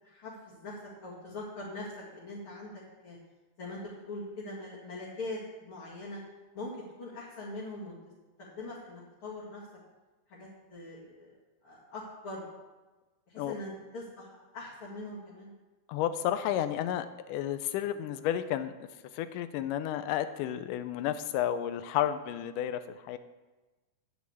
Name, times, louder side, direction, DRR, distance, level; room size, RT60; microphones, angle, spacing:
voice 1, 0.0-2.7 3.0-3.2 3.6-6.2 6.5-6.7 7.0-7.9 8.4-9.6 10.3-11.3 11.6-12.4 13.3-15.5, left 2 dB, 45° left, -7 dB, 2.6 m, -42 dB
voice 2, 15.9-18.7 19.1-23.2, left 11 dB, 85° left, 11 dB, 2.2 m, -32 dB
9.6 x 6.1 x 8.3 m, 1.2 s
omnidirectional pair, 3.6 m